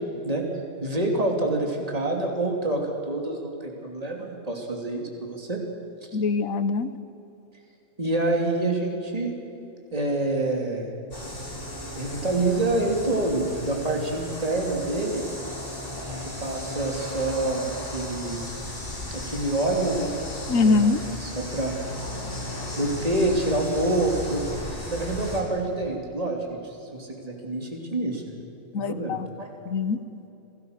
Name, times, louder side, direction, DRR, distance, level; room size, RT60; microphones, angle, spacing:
voice 1, 0.8-5.6 8.0-9.3 9.9-10.9 11.9-15.2 16.1-18.4 19.1-20.1 20.5-21.7 22.7-24.4 24.9-28.3 28.8-29.5, right 2 dB, 25° right, 1 dB, 3.0 m, -27 dB
voice 2, 6.1-6.9 20.5-21.0 28.7-29.2 29.7-30.0, left 4 dB, 80° left, 12 dB, 1.4 m, -22 dB
sound 1, 11.1-25.4, left 1 dB, 40° left, 5.3 m, -35 dB
27.0 x 18.5 x 6.7 m, 2.9 s
omnidirectional pair, 1.4 m